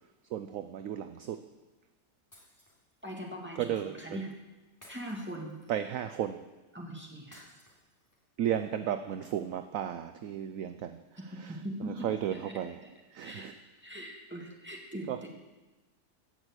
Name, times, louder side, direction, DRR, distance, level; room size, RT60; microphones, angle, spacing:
voice 1, 0.3-1.4 3.6-4.2 5.7-6.4 8.4-11.0 11.3-11.5 11.9-12.8 13.1-13.6 15.1-15.2, right 10 dB, 65° right, 10 dB, 0.8 m, -34 dB
Shatter, 2.3-3.2 4.8-5.9 7.3-8.3, left 1 dB, 10° left, 3.2 m, -58 dB
voice 2, 3.0-4.3 4.9-5.6 6.7-7.5 11.3-12.6 13.2-13.5 13.8-15.3, right 1 dB, 5° right, -1 dB, 2.1 m, -41 dB
16.0 x 6.3 x 8.1 m, 1.2 s
omnidirectional pair, 1.9 m